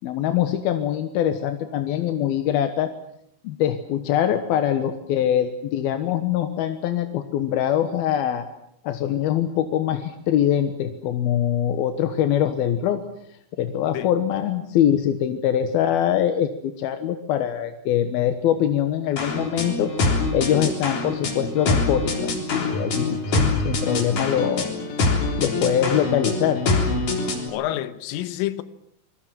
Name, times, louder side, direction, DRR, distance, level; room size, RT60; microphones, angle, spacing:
voice 1, 0.0-2.9 3.4-8.5 8.8-13.0 13.6-19.9 20.3-24.7 25.4-26.6, left 10 dB, 70° left, 2.6 m, -23 dB
sound 1, 19.2-27.5, left 3 dB, 45° left, 4.8 m, -24 dB
voice 2, 27.5-28.6, left 14 dB, 85° left, 3.8 m, -28 dB
26.5 x 21.0 x 7.5 m
omnidirectional pair, 5.7 m